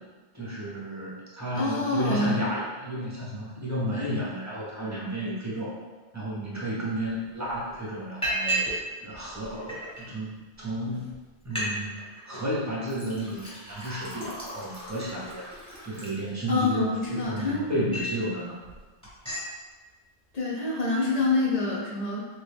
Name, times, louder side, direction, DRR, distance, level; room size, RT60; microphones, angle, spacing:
voice 1, 0.3-5.7 6.1-8.7 9.0-11.1 11.4-15.4 15.8-18.5, equal, 20° right, -6 dB, 0.6 m, -32 dB
voice 2, 1.5-2.4 16.5-17.6 20.3-22.3, left 3 dB, 45° left, -4 dB, 0.5 m, -26 dB
Liquid, 7.0-7.1 7.5-7.7 8.2-8.8 9.1-10.0 10.7-10.8 11.1-11.2 11.4-11.7 12.0-12.4 12.9-16.7 17.2-18.2 18.6-18.8 19.0-19.5, right 1 dB, 5° left, 0.9 m, -34 dB
3.4 x 2.2 x 3.4 m, 1.3 s
omnidirectional pair, 1.2 m